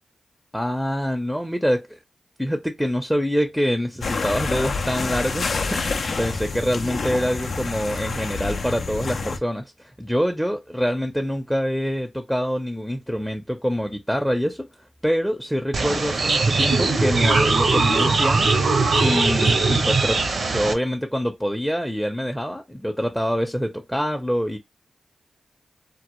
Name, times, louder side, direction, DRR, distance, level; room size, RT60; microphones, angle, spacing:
voice 1, 0.5-2.0 2.4-14.7 15.0-18.5 19.0-24.6, equal, ahead, 0.5 m, -25 dB
sound 1, 4.0-9.4, left 4 dB, 75° left, 0.4 m, -27 dB
sound 2, 15.7-20.7, right 3 dB, 70° right, 0.5 m, -20 dB
2.0 x 2.0 x 2.9 m
cardioid pair, 45°, 0 cm